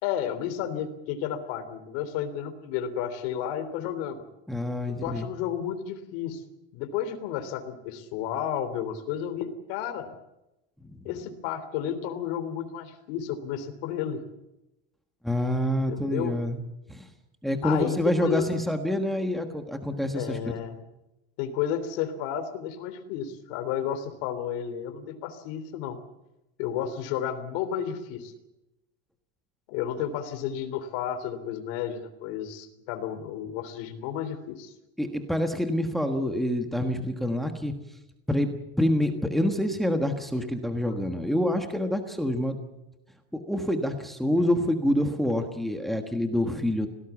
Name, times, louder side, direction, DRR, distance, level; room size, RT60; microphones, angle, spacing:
voice 1, 0.0-4.2 4.9-6.4 6.7-10.1 11.0-14.2 15.9-16.3 17.6-18.5 20.1-20.8 21.4-26.0 26.6-28.3 29.7-34.7, left 9 dB, 60° left, 9 dB, 3.4 m, -32 dB
voice 2, 4.5-5.3 10.9-11.0 15.2-16.6 16.9-17.1 17.4-20.4 35.0-37.7 38.3-38.5 38.8-42.6 43.3-46.9, left 1 dB, ahead, 5 dB, 1.4 m, -27 dB
26.0 x 17.5 x 7.2 m, 0.94 s
cardioid pair, 175°, 32 cm